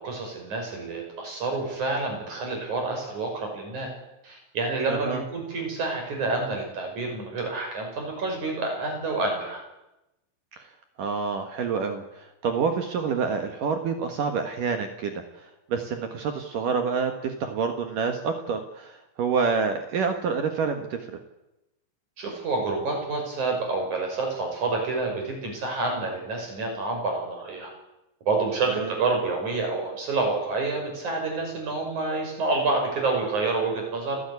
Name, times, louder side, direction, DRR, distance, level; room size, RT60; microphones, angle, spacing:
voice 1, 0.0-3.9 4.2-9.6 22.2-27.7 28.3-34.2, right 3 dB, 35° right, 2 dB, 7.0 m, -28 dB
voice 2, 4.9-5.2 10.5-10.7 11.0-21.0 28.7-28.9, right 5 dB, 60° right, 6 dB, 2.3 m, -28 dB
29.0 x 14.0 x 9.8 m, 0.95 s
omnidirectional pair, 5.9 m